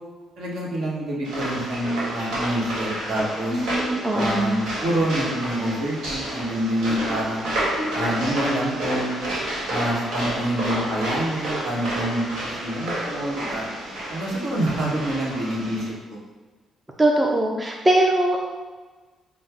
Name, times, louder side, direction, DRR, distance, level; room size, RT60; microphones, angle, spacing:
voice 1, 0.4-3.7 4.1-7.4 7.9-9.2 9.7-13.7 14.1-16.2, right 1 dB, 70° right, -4 dB, 1.1 m, -27 dB
sound 1, 1.2-15.9, right 1 dB, 90° right, 1.2 m, -30 dB
voice 2, 3.5-4.6 17.0-18.4, right 1 dB, 20° right, 0 dB, 0.4 m, -21 dB
5.3 x 2.0 x 3.3 m, 1.3 s
cardioid pair, 90°, 0 cm